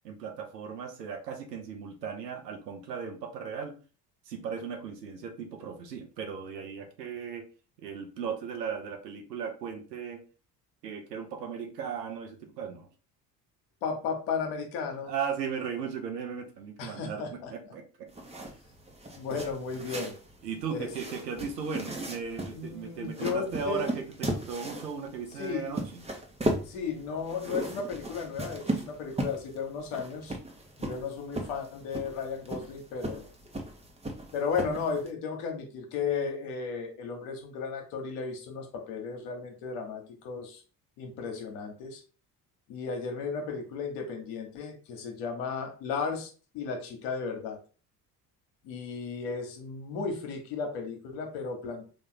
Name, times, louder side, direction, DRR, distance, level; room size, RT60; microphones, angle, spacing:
voice 1, 0.0-3.7 4.3-7.4 7.8-10.2 10.8-12.9 15.0-18.5 20.4-23.9 24.2-26.0, right 6 dB, 90° right, 4 dB, 0.8 m, -37 dB
voice 2, 13.8-15.1 16.8-17.5 19.2-20.1 20.7-21.2 22.5-24.0 25.4-25.8 26.6-30.4 30.8-33.3 34.3-40.6 41.0-42.0 42.7-47.6 48.6-51.8, left 5 dB, 70° left, 4 dB, 1.1 m, -34 dB
sound 1, 18.1-35.1, right 1 dB, 15° right, 1.0 m, -37 dB
3.5 x 2.6 x 3.8 m, 0.37 s
hypercardioid pair, 60°, 48 cm